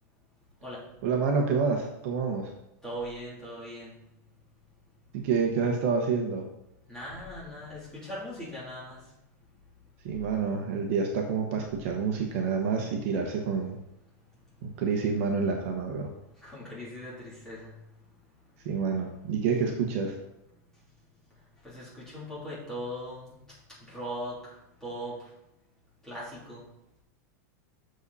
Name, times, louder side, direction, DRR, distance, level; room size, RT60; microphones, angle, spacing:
voice 1, 1.0-2.5 5.1-6.5 10.0-13.8 14.6-16.1 18.6-20.2, right 5 dB, 45° right, 2 dB, 1.1 m, -28 dB
voice 2, 2.8-3.9 6.9-9.0 16.4-17.7 21.6-23.2 23.9-24.4 24.8-25.2 26.1-26.6, equal, 5° left, -8 dB, 3.2 m, -39 dB
7.9 x 6.9 x 4.1 m, 0.84 s
supercardioid pair, 175°, 10 cm